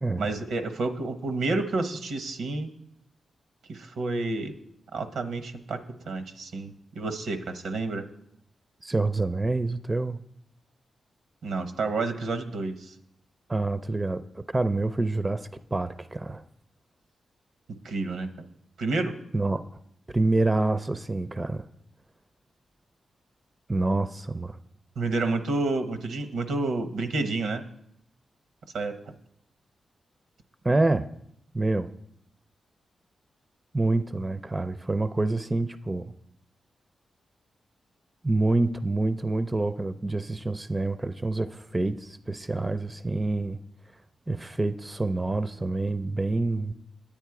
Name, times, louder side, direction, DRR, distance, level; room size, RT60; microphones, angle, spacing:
voice 1, 0.2-2.7 3.7-4.5 4.9-5.8 6.1-8.1 11.4-12.9 17.8-18.3 18.8-19.1 25.0-27.6 28.7-29.0, right 3 dB, 85° right, 0.9 m, -29 dB
voice 2, 8.8-10.2 13.5-16.4 19.3-19.7 20.1-21.7 23.7-24.6 30.6-31.1 31.5-31.9 33.7-36.1 38.2-43.6 44.3-46.7, right 2 dB, 25° right, 0.4 m, -27 dB
9.0 x 8.8 x 4.8 m
cardioid pair, 65°, 0 cm